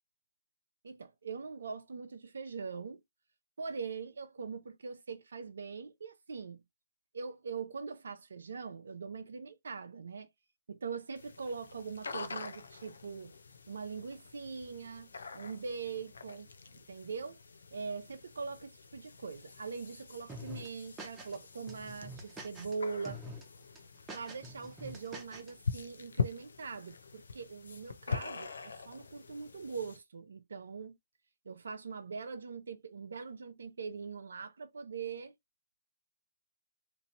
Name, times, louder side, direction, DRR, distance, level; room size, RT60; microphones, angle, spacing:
voice 1, 0.8-3.0 3.6-6.6 7.1-10.3 10.7-13.3 13.7-17.4 17.7-23.2 24.1-31.0 31.5-35.3, right 5 dB, 75° right, 0.5 m, -42 dB
sound 1, 11.1-30.0, left 5 dB, 80° left, 0.5 m, -44 dB
sound 2, 20.3-21.4 21.7-22.8 23.1-23.4 23.8-25.5, right 1 dB, 15° right, 0.9 m, -46 dB
3.0 x 2.6 x 2.6 m
hypercardioid pair, 135°, 0 cm